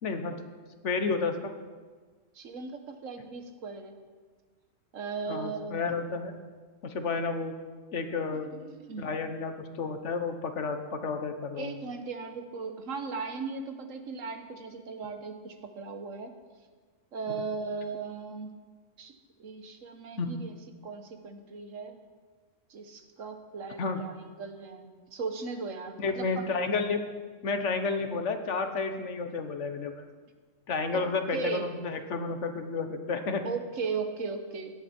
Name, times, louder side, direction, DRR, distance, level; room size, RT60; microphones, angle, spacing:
voice 1, 0.0-0.3 0.8-1.5 5.3-6.3 6.8-7.5 7.9-8.5 9.0-11.7 20.2-20.3 23.8-24.0 26.0-27.1 27.4-30.0 30.7-33.4, left 4 dB, 65° left, 7 dB, 1.4 m, -31 dB
voice 2, 2.3-3.9 4.9-5.8 8.5-9.1 11.5-16.3 17.1-18.5 19.0-20.5 20.8-22.0 22.7-26.6 30.9-31.6 33.4-34.8, right 4 dB, 80° right, 7 dB, 1.5 m, -37 dB
16.0 x 11.0 x 4.4 m, 1.5 s
omnidirectional pair, 1.3 m